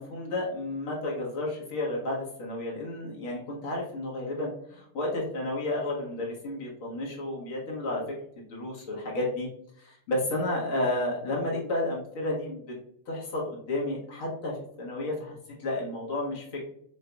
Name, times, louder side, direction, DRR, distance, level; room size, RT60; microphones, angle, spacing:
voice 1, 0.0-8.0 8.5-9.5 9.8-12.6 13.1-16.6, left 2 dB, 50° left, -3 dB, 1.2 m, -32 dB
3.8 x 3.1 x 2.3 m, 0.69 s
figure-of-eight pair, 90°, 0 cm